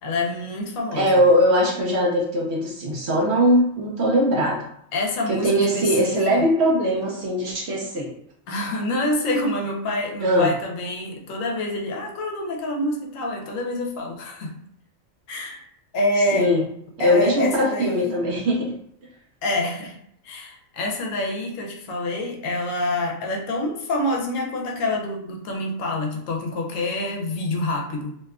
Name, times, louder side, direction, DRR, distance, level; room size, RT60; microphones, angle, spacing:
voice 1, 0.0-1.2 4.9-6.4 8.5-14.5 15.3-15.6 15.9-16.5 17.0-18.2 19.4-20.0 20.2-28.1, left 1 dB, 75° left, 0 dB, 0.9 m, -27 dB
voice 2, 0.9-4.6 5.3-8.1 10.2-10.5 16.3-16.6 17.0-18.7, equal, 65° right, -2 dB, 0.7 m, -20 dB
2.8 x 2.2 x 2.3 m, 0.71 s
omnidirectional pair, 1.4 m